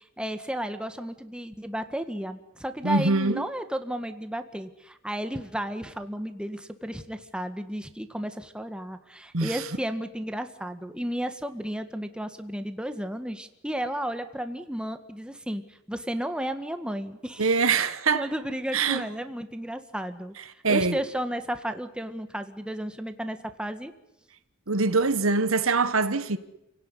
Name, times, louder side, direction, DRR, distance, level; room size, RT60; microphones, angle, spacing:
voice 1, 0.0-17.5 18.1-20.3 20.7-23.9, equal, 5° right, 1.7 m, -33 dB
voice 2, 2.8-3.4 9.3-9.6 17.4-18.3 18.7-19.0 20.6-21.0 24.7-26.4, right 4 dB, 80° right, 1.6 m, -23 dB
30.0 x 17.5 x 10.0 m
head